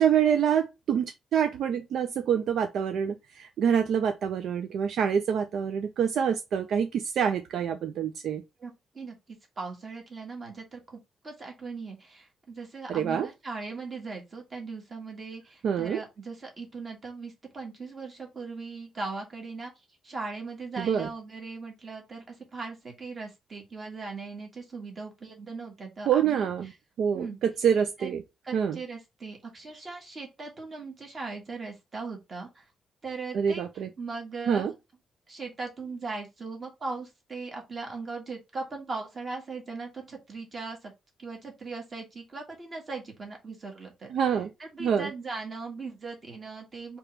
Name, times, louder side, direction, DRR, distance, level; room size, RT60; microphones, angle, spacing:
voice 1, 0.0-8.4 12.9-13.3 15.6-16.0 20.8-21.1 26.1-26.7 27.0-28.2 28.5-28.8 33.3-33.9 34.5-34.7 44.1-44.5 44.8-45.1, right 8 dB, 70° right, 0.5 m, -26 dB
voice 2, 8.6-9.1 9.6-19.7 20.0-26.7 27.1-27.4 28.0-28.2 28.4-32.6 33.0-33.7 34.0-34.7 35.3-40.9 41.2-44.1 44.6-47.0, right 4 dB, 30° right, 1.5 m, -39 dB
3.5 x 3.0 x 4.5 m
wide cardioid pair, 160°, 0 cm